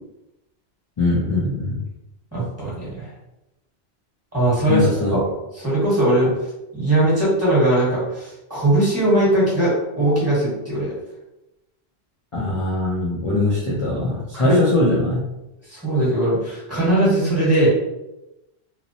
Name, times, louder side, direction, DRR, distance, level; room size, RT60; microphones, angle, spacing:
voice 1, 1.0-1.8 4.7-5.3 12.3-15.3, left 2 dB, 40° left, -6 dB, 0.5 m, -21 dB
voice 2, 2.3-3.1 4.3-6.3 6.7-10.9 14.3-14.6 15.7-17.7, right 1 dB, 15° right, -8 dB, 1.1 m, -20 dB
2.8 x 2.0 x 2.7 m, 0.94 s
omnidirectional pair, 1.1 m